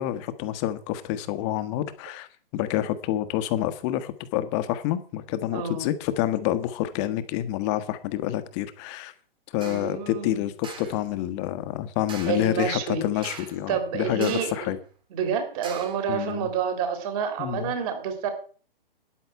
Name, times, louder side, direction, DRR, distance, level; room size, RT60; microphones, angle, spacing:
voice 1, 0.0-2.3 2.5-9.1 9.5-14.8 16.1-16.5 17.4-17.7, left 13 dB, 30° left, 11 dB, 1.3 m, -28 dB
voice 2, 5.5-5.9 9.7-10.4 12.3-13.4 13.7-14.7 15.1-18.3, right 7 dB, 40° right, 5 dB, 3.7 m, -29 dB
sound 1, 9.6-9.9 10.6-11.0 12.1-12.5 13.2-13.7 14.2-14.7 15.6-16.1, right 5 dB, 15° right, 2.2 m, -41 dB
13.5 x 10.0 x 4.7 m, 0.41 s
hypercardioid pair, 130°, 29 cm